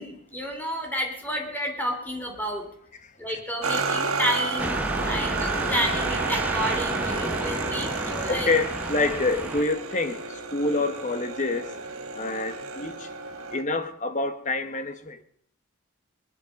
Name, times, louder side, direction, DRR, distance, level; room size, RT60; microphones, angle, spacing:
voice 1, 0.0-2.7 3.2-4.8 5.1-8.5, equal, 10° left, 2 dB, 3.3 m, -30 dB
sound 1, 3.6-13.6, right 4 dB, 90° right, 1.9 m, -31 dB
sound 2, 4.6-9.6, right 1 dB, 5° right, 1.0 m, -31 dB
voice 2, 8.3-11.7 12.1-13.1 13.5-15.2, left 3 dB, 35° left, 10 dB, 1.3 m, -27 dB
21.0 x 12.0 x 5.3 m, 0.63 s
head